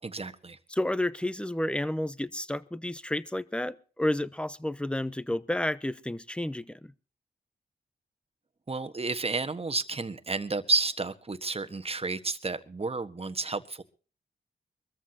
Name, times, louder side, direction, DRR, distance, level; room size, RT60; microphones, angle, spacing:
voice 1, 0.0-0.6 8.7-13.8, right 3 dB, 35° right, 1.4 m, -31 dB
voice 2, 0.7-6.9, left 1 dB, 5° left, 0.9 m, -31 dB
23.5 x 14.0 x 2.9 m
cardioid pair, 60°, 18 cm